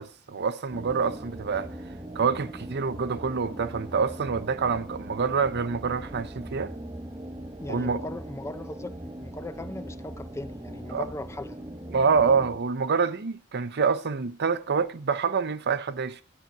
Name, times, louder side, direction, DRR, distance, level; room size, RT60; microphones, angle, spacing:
voice 1, 0.0-1.7 2.1-6.7 7.7-8.0 10.9-11.0 11.9-16.2, right 5 dB, 50° right, 0.7 m, -26 dB
sound 1, 0.7-12.6, right 1 dB, 15° right, 0.8 m, -40 dB
voice 2, 7.6-11.6, left 1 dB, 15° left, 0.5 m, -39 dB
13.0 x 5.9 x 9.4 m
head